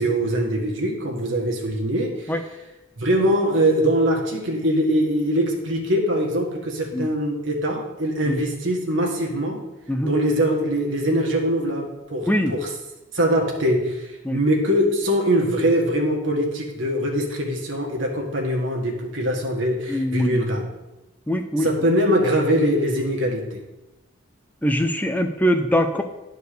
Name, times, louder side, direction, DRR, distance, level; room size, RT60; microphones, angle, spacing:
voice 1, 0.0-2.3 3.0-9.6 10.0-12.7 13.1-20.7 21.6-23.6, equal, 60° right, 1 dB, 1.6 m, -22 dB
voice 2, 19.9-20.4 21.3-21.7 24.6-26.0, equal, 10° left, 6 dB, 0.6 m, -22 dB
10.0 x 4.6 x 6.7 m, 1.0 s
head